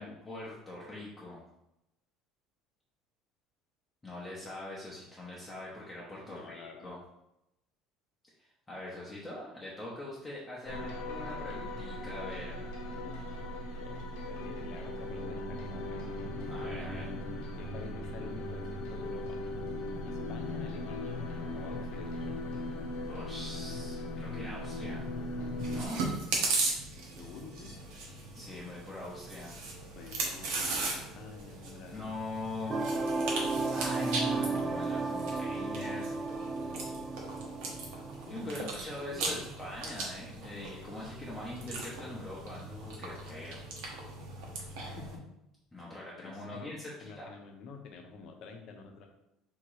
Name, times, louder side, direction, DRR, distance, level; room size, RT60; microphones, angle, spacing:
voice 1, 0.0-1.4 4.0-7.0 8.4-12.6 16.5-17.1 23.0-25.0 25.7-26.1 28.3-29.5 31.9-36.1 38.3-43.6 45.7-47.3, left 1 dB, 10° left, -6 dB, 0.8 m, -42 dB
voice 2, 6.3-7.0 12.9-13.5 13.8-16.1 17.3-19.4 20.0-22.4 27.2-27.7 30.0-32.1 38.3-38.7 39.1-39.5 45.0-45.3 46.2-46.7 47.0-49.1, left 5 dB, 50° left, 4 dB, 0.8 m, -49 dB
sound 1, 10.6-25.9, left 1 dB, 80° left, 0.9 m, -38 dB
Chewing mastication, 25.6-45.2, right 3 dB, 85° right, 1.2 m, -38 dB
sound 2, 32.7-38.6, right 3 dB, 20° right, 0.4 m, -34 dB
3.6 x 3.0 x 4.7 m, 0.85 s
cardioid pair, 160°, 0 cm